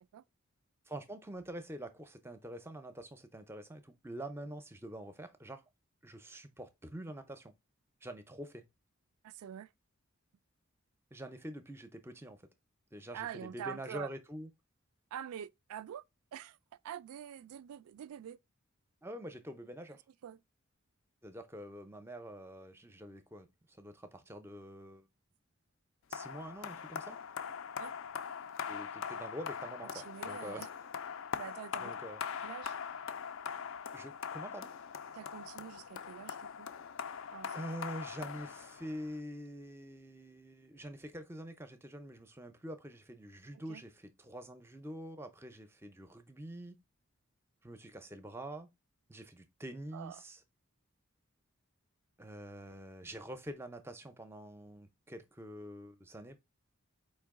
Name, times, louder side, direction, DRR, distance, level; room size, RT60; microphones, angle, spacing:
voice 1, 0.9-5.6 6.0-7.5 8.0-8.6 11.1-12.4 12.9-14.5 19.0-20.0 21.2-25.1 26.1-27.2 28.7-30.6 31.8-32.2 33.9-34.7 37.5-43.9 44.2-46.8 47.6-48.7 49.1-50.4 52.2-56.4, right 1 dB, 10° right, 0.4 m, -46 dB
voice 2, 9.2-9.7 13.1-14.1 15.1-16.0 16.3-16.6 16.8-18.4 20.2-20.4 27.8-27.9 29.8-30.7 31.4-31.9 32.4-32.8 35.1-36.7 37.3-37.7 43.5-43.8 49.9-50.2, right 9 dB, 90° right, 0.3 m, -46 dB
sound 1, 26.1-39.1, left 7 dB, 65° left, 0.3 m, -42 dB
4.5 x 2.9 x 3.5 m
head